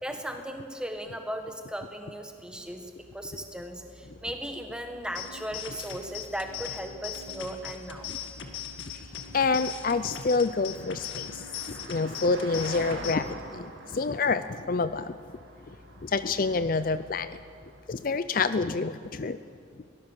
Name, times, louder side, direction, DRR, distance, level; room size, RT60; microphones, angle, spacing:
voice 1, 0.0-8.1, equal, 5° right, 4 dB, 1.6 m, -37 dB
Car passing by, 2.5-18.2, right 2 dB, 70° right, 2.8 m, -47 dB
sound 1, 5.1-13.1, left 9 dB, 70° left, 1.9 m, -40 dB
voice 2, 9.3-15.1 16.0-17.4 17.9-19.4, left 4 dB, 45° left, 13 dB, 0.5 m, -28 dB
23.0 x 17.5 x 7.5 m, 2.4 s
head